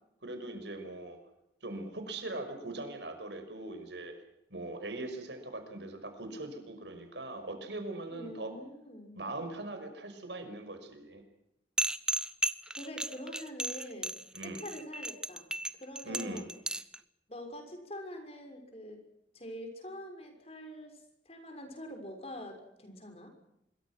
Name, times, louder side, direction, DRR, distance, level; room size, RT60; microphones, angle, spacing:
voice 1, 0.2-1.2 1.6-4.2 4.5-8.5 9.1-11.2 14.3-14.7 16.1-16.5, right 2 dB, 90° right, 7 dB, 5.8 m, -41 dB
voice 2, 8.1-9.2 12.0-12.2 12.7-14.1 14.4-15.5 15.8-16.5 17.3-19.0 19.3-23.3, equal, 35° left, 5 dB, 6.3 m, -45 dB
sound 1, 11.8-17.0, right 1 dB, 5° right, 0.8 m, -34 dB
26.0 x 23.0 x 6.2 m, 0.84 s
head